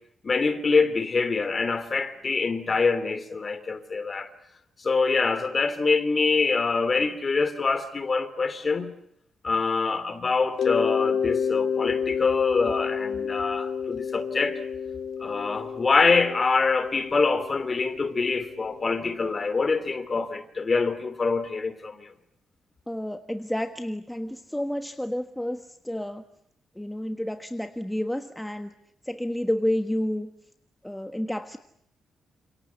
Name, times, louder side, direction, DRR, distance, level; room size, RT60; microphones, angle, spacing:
voice 1, 0.2-4.3 4.8-8.9 9.4-14.6 15.2-22.1, left 4 dB, 25° left, 3.0 m, -25 dB
Mallet percussion, 10.6-19.2, left 6 dB, 60° left, 2.1 m, -30 dB
voice 2, 22.9-26.2 26.8-28.7 29.0-30.3 30.8-31.6, left 1 dB, 5° left, 1.4 m, -30 dB
30.0 x 28.0 x 7.0 m
wide cardioid pair, 160°, 0 cm